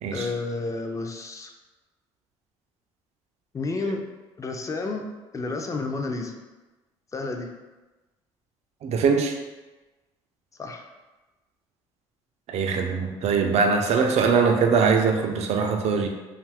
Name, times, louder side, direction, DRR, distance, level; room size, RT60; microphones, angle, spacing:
voice 1, 0.1-1.5 3.5-4.1 4.4-5.0 5.3-6.3 7.1-7.5 10.6-10.9, left 3 dB, 25° left, 3 dB, 0.4 m, -30 dB
voice 2, 8.8-9.4 12.5-16.1, right 5 dB, 55° right, 4 dB, 0.5 m, -22 dB
2.6 x 2.4 x 3.3 m, 1.1 s
supercardioid pair, 75°, 13 cm